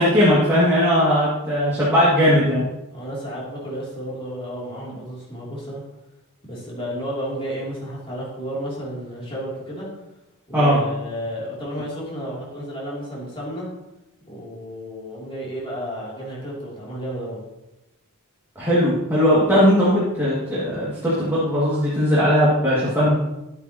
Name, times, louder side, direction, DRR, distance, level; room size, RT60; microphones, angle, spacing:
voice 1, 0.0-2.6 10.5-10.8 18.6-23.2, equal, 10° right, -10 dB, 2.3 m, -18 dB
voice 2, 2.9-5.8 6.4-9.9 10.5-13.7 14.3-17.4, equal, 25° left, -6 dB, 3.0 m, -32 dB
11.5 x 9.0 x 3.0 m, 0.98 s
head